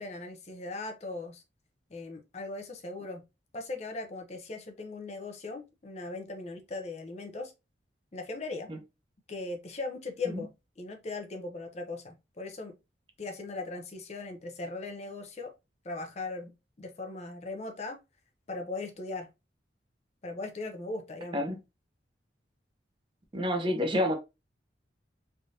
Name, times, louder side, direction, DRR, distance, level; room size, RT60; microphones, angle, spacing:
voice 1, 0.0-1.4 1.9-3.2 3.5-7.5 8.1-8.7 9.3-10.5 10.8-12.8 13.2-15.5 15.8-16.5 16.8-18.0 18.5-19.3 20.2-21.4, left 3 dB, 35° left, 0.6 m, -38 dB
voice 2, 23.3-24.2, left 1 dB, 25° right, 0.6 m, -28 dB
3.3 x 2.5 x 2.7 m
head